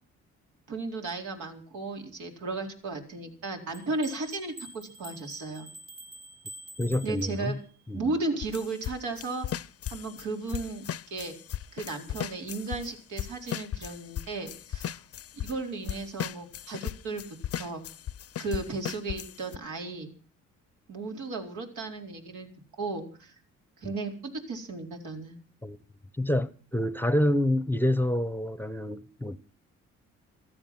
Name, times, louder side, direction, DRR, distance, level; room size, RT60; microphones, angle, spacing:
voice 1, 0.7-5.7 7.0-7.6 7.9-9.5 9.9-11.4 11.7-15.0 15.4-17.2 17.6-17.8 18.4-20.1 20.9-22.5 22.8-23.3 23.8-25.4, right 3 dB, 80° right, 4.3 m, -35 dB
sound 1, 3.7-7.7, equal, 50° right, 1.9 m, -47 dB
voice 2, 6.8-7.6 7.9-8.1 25.6-25.8 26.2-29.4, left 1 dB, 5° left, 0.9 m, -27 dB
sound 2, 8.4-12.9 13.2-15.6 15.9-19.6, left 11 dB, 50° left, 0.7 m, -36 dB
16.0 x 13.5 x 6.0 m
cardioid pair, 90°, 30 cm